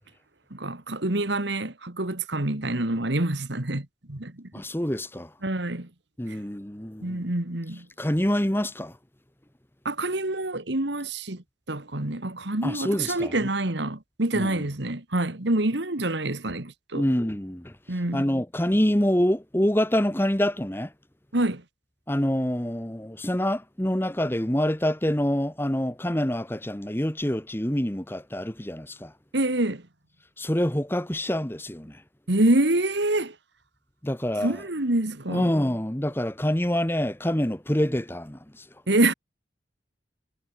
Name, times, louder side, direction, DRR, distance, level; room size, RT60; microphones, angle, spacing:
voice 1, 0.5-4.5 5.4-5.9 6.3-6.4 7.0-7.9 9.8-17.0 17.9-18.3 21.3-21.6 29.3-29.8 32.3-33.4 34.4-35.5 38.9-39.1, right 2 dB, 65° right, 2.1 m, -26 dB
voice 2, 4.5-5.3 6.2-7.3 8.0-8.9 12.6-13.5 14.3-14.5 16.9-17.7 18.1-20.9 22.1-29.1 30.4-32.0 34.0-34.6 35.3-38.6, equal, 10° left, 1.2 m, -26 dB
head